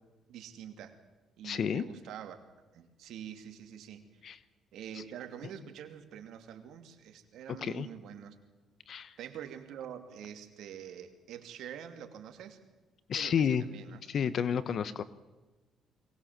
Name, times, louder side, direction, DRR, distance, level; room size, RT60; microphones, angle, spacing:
voice 1, 0.3-0.9 1.4-2.4 2.7-4.0 4.7-8.3 9.2-12.6 13.1-14.0, right 9 dB, 80° right, 6 dB, 2.7 m, -46 dB
voice 2, 1.4-1.9 4.2-4.4 7.6-7.9 8.9-9.1 13.1-13.6 14.1-15.0, left 7 dB, 55° left, 15 dB, 1.0 m, -30 dB
23.0 x 20.0 x 7.6 m, 1.2 s
cardioid pair, 85°, 0 cm